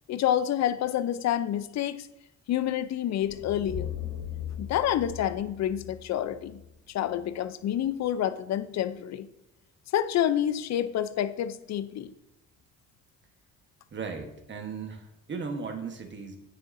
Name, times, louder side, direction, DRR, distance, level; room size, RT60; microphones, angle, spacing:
voice 1, 0.1-2.1 2.5-3.9 4.6-6.6 6.9-9.3 9.9-12.1, left 11 dB, 60° left, 13 dB, 0.5 m, -28 dB
sound 1, 3.2-7.4, left 9 dB, 85° left, 1.3 m, -39 dB
voice 2, 13.9-16.4, right 5 dB, 40° right, 5 dB, 1.2 m, -37 dB
9.0 x 6.4 x 2.6 m, 0.88 s
cardioid pair, 90°, 30 cm